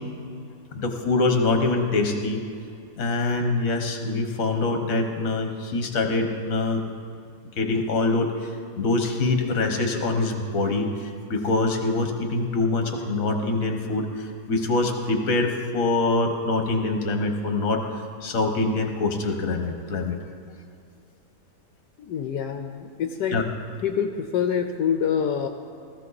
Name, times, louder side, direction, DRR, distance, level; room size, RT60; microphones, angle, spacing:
voice 1, 0.7-2.4 3.0-6.8 7.6-8.3 8.8-17.8 18.2-20.2 23.3-23.4, left 3 dB, 55° left, 5 dB, 1.6 m, -24 dB
voice 2, 22.0-23.4 23.8-25.5, left 7 dB, 80° left, 6 dB, 1.3 m, -26 dB
16.5 x 14.5 x 4.1 m, 2.4 s
omnidirectional pair, 1.8 m